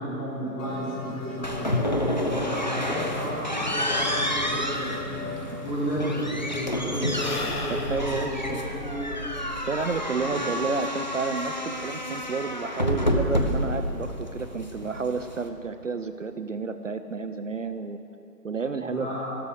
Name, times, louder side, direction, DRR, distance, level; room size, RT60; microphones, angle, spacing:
voice 1, 0.0-9.2 10.3-10.4 18.8-19.4, equal, 5° left, -14 dB, 1.1 m, -32 dB
sound 1, 0.6-7.9, left 3 dB, 90° left, 4.6 m, -40 dB
sound 2, 1.4-15.5, equal, 30° left, 0.7 m, -29 dB
Sigh / Breathing, 5.1-5.2 5.4-10.1, left 3 dB, 60° left, 2.2 m, -38 dB
voice 2, 7.7-8.6 9.6-18.0 18.4-19.1, right 4 dB, 50° right, 9 dB, 0.6 m, -31 dB
16.0 x 12.5 x 6.4 m, 2.8 s
figure-of-eight pair, 165°, 49 cm